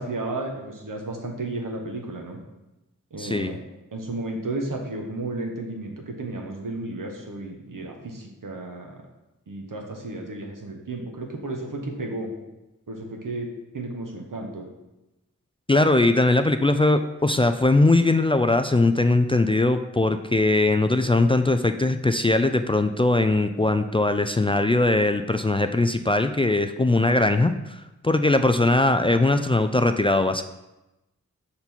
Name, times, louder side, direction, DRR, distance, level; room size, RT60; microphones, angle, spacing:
voice 1, 0.0-2.4 3.1-3.6 3.9-9.0 9.5-12.3 12.9-13.5 13.7-14.6, right 2 dB, 75° right, 1 dB, 1.1 m, -33 dB
voice 2, 3.2-3.6 15.7-30.4, left 2 dB, 15° left, 7 dB, 0.3 m, -20 dB
5.4 x 4.2 x 4.4 m, 0.98 s
cardioid pair, 45°, 33 cm